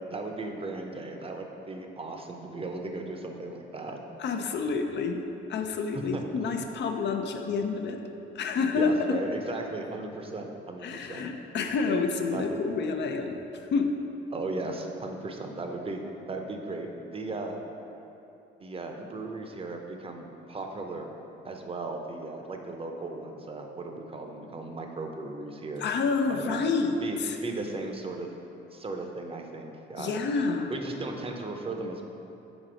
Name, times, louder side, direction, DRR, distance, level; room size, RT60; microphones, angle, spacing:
voice 1, 0.1-4.0 5.9-6.2 8.7-11.3 11.9-12.0 12.3-12.6 14.3-16.0 16.3-17.6 18.6-21.1 21.4-25.9 26.3-26.6 27.0-28.3 28.7-30.2 30.7-32.1, right 2 dB, 30° right, 3 dB, 0.7 m, -36 dB
voice 2, 4.2-5.2 5.5-8.0 8.3-9.2 10.8-13.9 25.8-26.9 27.2-27.4 30.0-30.7, left 4 dB, 60° left, 4 dB, 0.6 m, -28 dB
6.1 x 4.0 x 5.1 m, 2.9 s
cardioid pair, 90°, 20 cm